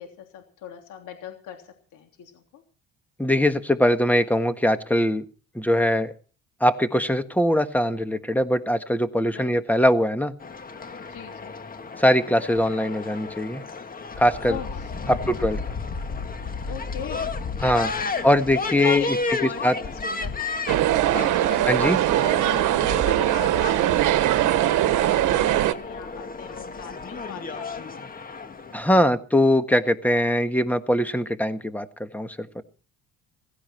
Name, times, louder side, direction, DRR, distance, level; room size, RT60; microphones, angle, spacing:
voice 1, 0.0-2.6 9.3-9.6 11.1-11.5 14.5-15.2 16.6-17.3 17.7-18.4 18.8-19.6 19.9-20.5 21.4-21.6 22.8-28.0, left 8 dB, 75° left, 4 dB, 3.2 m, -39 dB
voice 2, 3.2-5.2 5.5-6.1 6.6-10.3 12.0-13.6 14.2-14.6 15.1-15.6 17.6-17.9 18.2-19.0 19.6-19.7 21.7-22.0 28.7-32.6, equal, 5° left, 9 dB, 1.5 m, -21 dB
sound 1, 10.4-29.1, left 4 dB, 30° left, 1.6 m, -33 dB
sound 2, 20.7-25.7, right 13 dB, 75° right, 1.3 m, -21 dB
16.5 x 16.5 x 4.5 m, 0.37 s
cardioid pair, 120°, 31 cm